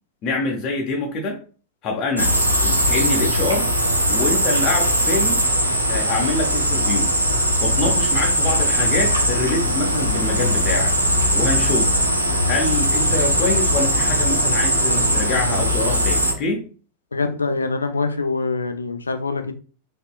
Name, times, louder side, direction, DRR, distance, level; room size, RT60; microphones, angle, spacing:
voice 1, 0.2-1.4 1.8-2.4 2.6-3.7 4.1-5.4 5.9-7.1 7.6-10.9 11.3-11.9 12.5-16.6, left 3 dB, 35° left, 1 dB, 0.7 m, -25 dB
sound 1, 2.2-16.3, equal, 85° right, 0.6 m, -20 dB
voice 2, 17.1-19.5, left 3 dB, 75° left, 9 dB, 0.4 m, -24 dB
4.0 x 2.8 x 2.2 m, 0.39 s
figure-of-eight pair, 90°, 0 cm